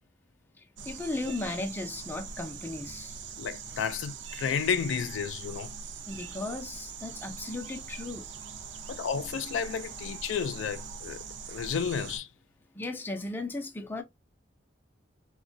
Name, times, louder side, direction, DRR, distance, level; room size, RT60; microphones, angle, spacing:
voice 1, 0.6-3.2 6.1-8.3 12.7-14.0, left 2 dB, 10° left, 0.4 m, -36 dB
sound 1, 0.8-12.2, right 5 dB, 70° right, 0.5 m, -42 dB
voice 2, 3.4-5.7 8.9-12.3, left 7 dB, 75° left, 0.3 m, -32 dB
3.7 x 2.2 x 2.5 m
head